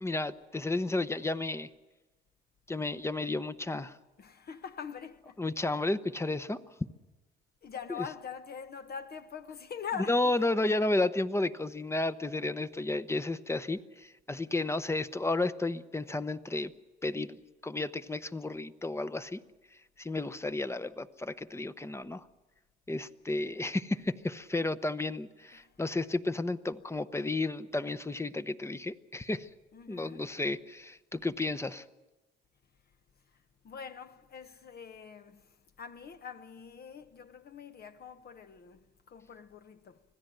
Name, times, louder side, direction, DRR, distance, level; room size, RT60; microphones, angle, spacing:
voice 1, 0.0-1.7 2.7-3.9 5.4-6.6 7.9-8.1 10.1-16.7 17.0-19.4 20.0-22.2 22.9-29.5 29.9-31.8, left 2 dB, 15° left, 0.8 m, -32 dB
voice 2, 4.2-5.4 7.6-10.3 25.5-25.7 29.7-30.3 33.6-40.0, left 7 dB, 50° left, 1.0 m, -44 dB
25.0 x 16.5 x 7.9 m
cardioid pair, 90°, 20 cm